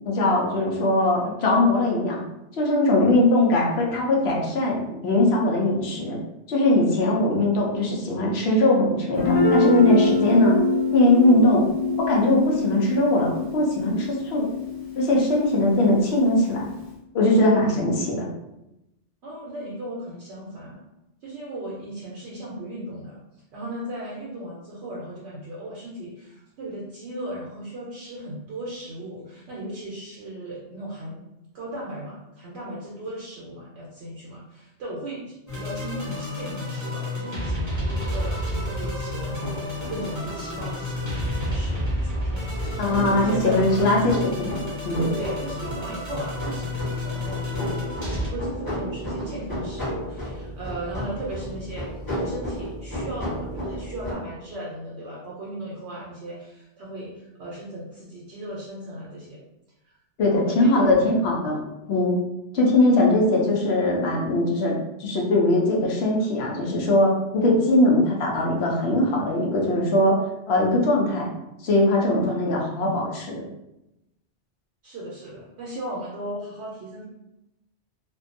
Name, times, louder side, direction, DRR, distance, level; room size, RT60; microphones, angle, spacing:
voice 1, 0.0-2.2 2.6-6.2 6.5-10.6 10.9-11.7 12.0-14.5 15.0-16.7 17.1-18.3 42.8-44.6 44.8-45.0 60.2-61.6 61.9-62.2 62.5-70.2 70.5-71.3 71.6-73.4, left 1 dB, 65° left, -2 dB, 0.8 m, -21 dB
Guitar, 9.2-16.9, left 3 dB, 45° left, 0.5 m, -25 dB
voice 2, 19.2-20.8 21.2-23.2 23.5-31.2 31.5-43.9 45.0-51.9 52.2-59.4 59.8-60.0 60.2-61.0 74.8-77.1, right 1 dB, 70° right, -5 dB, 0.8 m, -36 dB
sound 1, 35.5-48.3, left 1 dB, 20° right, 0.6 m, -30 dB
sound 2, 39.4-54.1, equal, 20° left, 0.8 m, -34 dB
2.5 x 2.2 x 2.5 m, 0.90 s
omnidirectional pair, 1.2 m